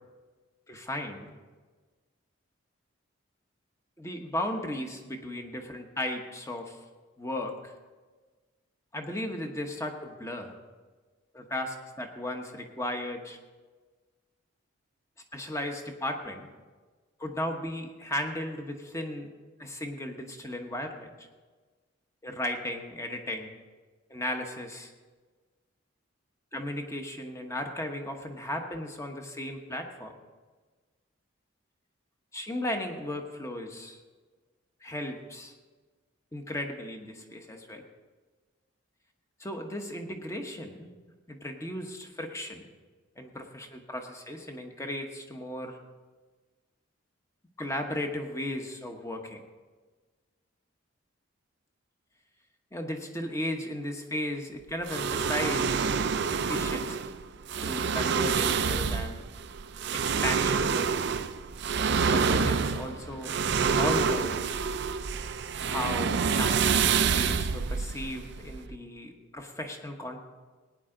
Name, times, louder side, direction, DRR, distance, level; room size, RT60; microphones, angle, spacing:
voice 1, 0.7-1.4 4.0-6.8 7.2-7.7 8.9-10.6 11.3-13.4 15.3-16.5 17.2-19.3 19.6-21.3 22.2-23.5 24.1-24.9 26.5-30.1 32.3-34.0 34.8-35.5 36.3-37.8 39.4-40.9 41.3-42.7 43.2-45.8 47.6-49.4 52.7-56.0 56.3-57.1 57.6-59.3 59.9-60.9 62.0-63.4 63.8-64.3 65.6-70.2, left 1 dB, 15° left, 4 dB, 1.1 m, -35 dB
sound 1, 54.9-68.8, right 5 dB, 55° right, 0.5 m, -27 dB
18.0 x 9.8 x 3.8 m, 1.4 s
head